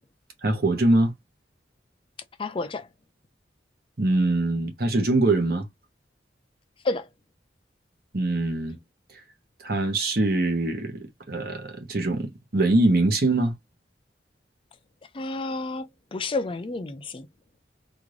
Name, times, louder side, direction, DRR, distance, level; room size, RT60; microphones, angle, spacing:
voice 1, 0.4-1.1 4.0-5.7 8.1-8.8 9.1-9.2 9.6-13.5, right 2 dB, 55° right, 1.1 m, -23 dB
voice 2, 2.4-2.9 6.8-7.1 15.1-17.3, left 3 dB, 30° left, 0.4 m, -30 dB
3.5 x 2.5 x 3.1 m
head